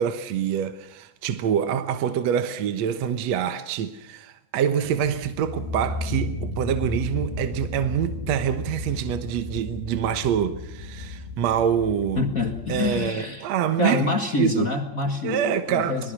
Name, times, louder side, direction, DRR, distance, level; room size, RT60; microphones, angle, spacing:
voice 1, 0.0-12.2 12.7-14.1 14.4-14.7 15.2-16.1, right 9 dB, 65° right, 1.8 m, -26 dB
sound 1, 4.8-13.1, left 2 dB, 90° left, 4.2 m, -34 dB
voice 2, 12.2-13.5 13.8-16.1, left 3 dB, 50° left, 1.0 m, -26 dB
26.5 x 20.0 x 6.3 m
omnidirectional pair, 4.3 m